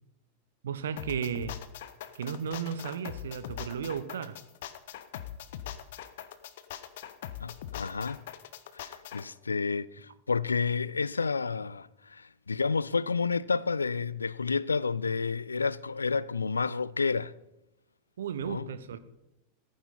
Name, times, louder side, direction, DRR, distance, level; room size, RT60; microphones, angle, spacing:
voice 1, 0.6-1.6 2.1-4.4 18.2-19.0, right 7 dB, 65° right, 1.0 m, -34 dB
sound 1, 1.0-9.2, left 11 dB, 55° left, 1.1 m, -41 dB
voice 2, 7.4-8.2 8.7-17.3 18.4-18.7, left 4 dB, 75° left, 0.4 m, -30 dB
16.0 x 14.5 x 4.2 m
figure-of-eight pair, 90°, 0 cm